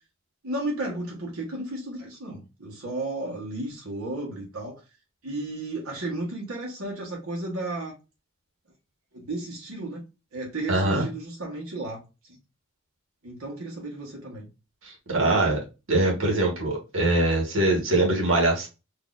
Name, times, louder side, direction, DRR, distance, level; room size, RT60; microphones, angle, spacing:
voice 1, 0.4-4.8 5.2-7.9 9.1-10.0 10.3-12.0 12.3-12.4 13.2-14.5, right 2 dB, 85° right, 1.1 m, -33 dB
voice 2, 10.7-11.0 14.8-15.6 15.9-18.7, right 2 dB, 65° right, 1.3 m, -23 dB
4.0 x 2.7 x 2.4 m
head